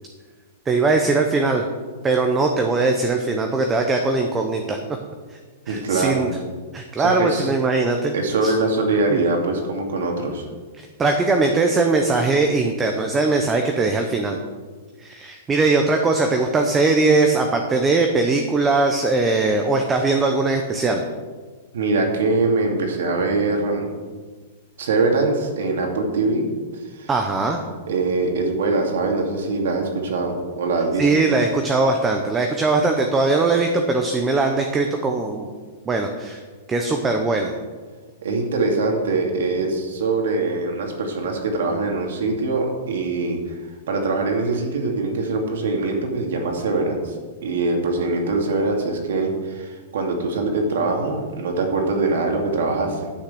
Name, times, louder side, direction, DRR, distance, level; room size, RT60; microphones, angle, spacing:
voice 1, 0.7-1.6 2.0-4.8 5.7-6.3 6.7-8.1 8.4-8.5 11.0-14.4 15.0-21.0 27.1-27.6 31.0-35.5 35.9-36.4 36.7-37.5, right 3 dB, 10° right, 3 dB, 0.7 m, -20 dB
voice 2, 5.7-6.3 7.0-7.5 8.1-10.5 21.7-23.9 24.8-26.5 26.9-27.1 27.9-31.1 38.2-43.6 43.9-47.1 47.4-53.1, right 3 dB, 75° right, 2 dB, 2.7 m, -23 dB
10.0 x 6.4 x 7.9 m, 1.4 s
supercardioid pair, 165°, 0 cm